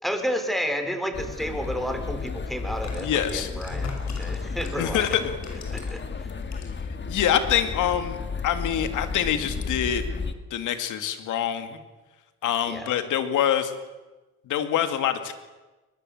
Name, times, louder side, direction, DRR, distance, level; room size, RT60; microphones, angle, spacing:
voice 1, 0.0-5.2 5.7-6.3 12.7-12.9, equal, ahead, 6 dB, 4.3 m, -31 dB
sound 1, 1.1-10.3, left 4 dB, 35° left, 1.9 m, -33 dB
sound 2, 1.6-1.7 2.6-6.1 6.4-6.9 7.2-7.3, left 4 dB, 65° left, 6.5 m, -40 dB
voice 2, 3.0-3.5 4.8-5.2 7.1-8.2 8.4-10.0 10.5-11.8 12.4-13.7 14.4-15.3, left 10 dB, 80° left, 9 dB, 2.4 m, -25 dB
22.0 x 21.5 x 7.9 m, 1.2 s
cardioid pair, 90°, 30 cm